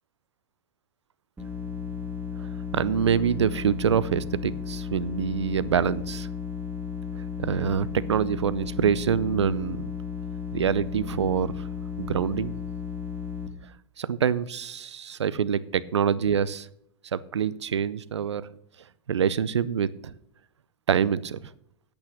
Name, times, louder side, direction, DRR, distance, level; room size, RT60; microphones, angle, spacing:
sound 1, 1.4-13.5, left 6 dB, 15° right, 2.3 m, -34 dB
voice 1, 2.4-6.3 7.4-9.9 10.5-11.5 12.0-12.5 14.0-16.7 17.1-18.4 19.1-20.1 20.9-21.5, right 7 dB, 85° right, 18 dB, 0.6 m, -26 dB
8.8 x 8.6 x 6.5 m, 0.73 s
hypercardioid pair, 100°, 14 cm